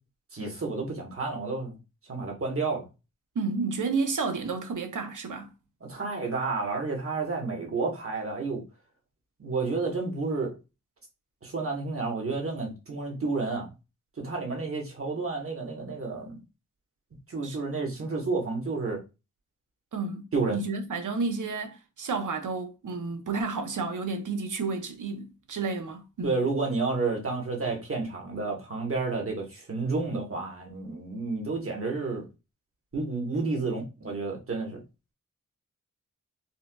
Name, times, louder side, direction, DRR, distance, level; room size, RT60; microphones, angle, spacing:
voice 1, 0.3-1.7 2.1-2.9 5.9-8.6 9.4-10.5 11.4-13.7 14.2-16.4 17.3-19.0 20.3-20.6 26.2-32.2 32.9-34.8, right 3 dB, 45° right, 1.2 m, -30 dB
voice 2, 3.4-5.5 17.4-17.6 19.9-26.4, right 4 dB, 70° right, 0.7 m, -31 dB
4.2 x 2.4 x 2.2 m
wide cardioid pair, 110°, 32 cm